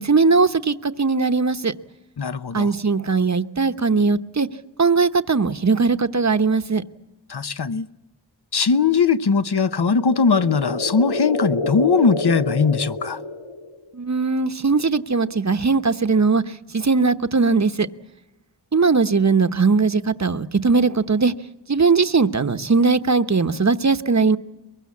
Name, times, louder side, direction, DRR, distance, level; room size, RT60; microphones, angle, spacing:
voice 1, 0.0-1.7 2.5-4.5 4.8-6.8 13.9-16.4 16.7-17.9 18.7-21.3 21.7-24.4, right 4 dB, 40° right, 0.9 m, -19 dB
voice 2, 2.2-2.7 7.3-7.9 8.5-13.2, left 5 dB, 60° left, 0.9 m, -20 dB
sound 1, 9.7-13.9, left 2 dB, 90° left, 1.8 m, -28 dB
23.0 x 22.5 x 8.4 m
wide cardioid pair, 55°, 44 cm